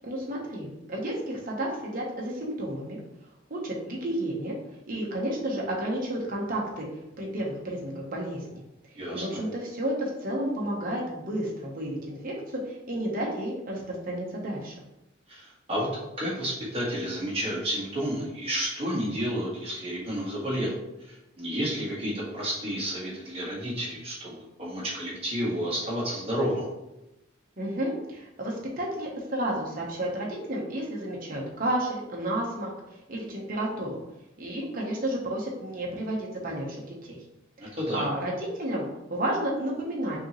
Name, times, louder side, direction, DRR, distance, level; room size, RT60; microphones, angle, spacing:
voice 1, 0.0-3.0 3.5-4.5 4.9-6.9 7.2-8.6 9.1-14.8 27.6-32.7 33.1-34.0 34.4-37.2 37.6-40.2, right 1 dB, 45° right, -2 dB, 1.0 m, -31 dB
voice 2, 8.9-9.3 15.3-15.9 16.2-20.7 21.0-26.7 37.6-38.1, equal, 30° right, -7 dB, 1.5 m, -31 dB
5.1 x 2.9 x 3.1 m, 0.93 s
head